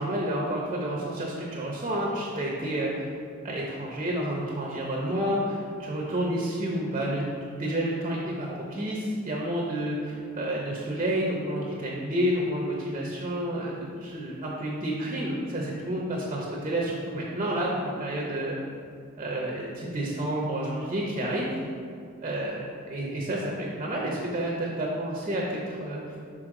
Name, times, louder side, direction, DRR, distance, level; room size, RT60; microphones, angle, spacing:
voice 1, 0.0-3.1 3.4-18.6 19.2-21.6 22.2-26.0, right 1 dB, 25° right, -3 dB, 0.7 m, -30 dB
6.2 x 4.2 x 3.7 m, 2.3 s
head